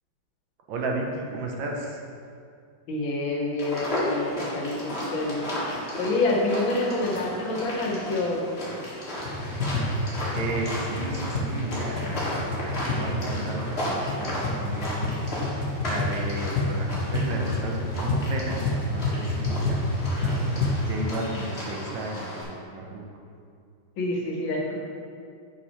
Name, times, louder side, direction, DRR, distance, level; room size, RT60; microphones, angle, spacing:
voice 1, 0.7-2.0 10.3-15.2 15.5-20.6 20.9-23.0, right 2 dB, 70° right, 0 dB, 1.4 m, -34 dB
voice 2, 2.9-8.4 24.0-24.8, left 2 dB, 70° left, -1 dB, 1.7 m, -27 dB
sound 1, 3.6-22.4, left 1 dB, 35° left, 1.5 m, -34 dB
sound 2, 9.2-20.9, left 2 dB, 55° left, 1.1 m, -29 dB
5.7 x 4.9 x 5.5 m, 2.3 s
omnidirectional pair, 2.3 m